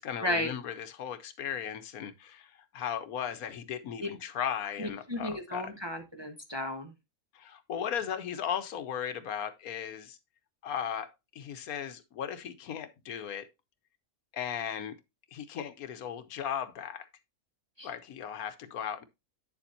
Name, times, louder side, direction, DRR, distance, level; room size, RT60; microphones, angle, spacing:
voice 1, 0.0-5.8 7.3-10.2 10.6-13.5 14.3-14.9 15.3-17.1 17.8-19.0, left 8 dB, 85° left, 1.3 m, -37 dB
voice 2, 4.8-6.9 17.8-17.9, left 1 dB, 20° right, 0.9 m, -34 dB
9.0 x 7.1 x 2.6 m
omnidirectional pair, 1.5 m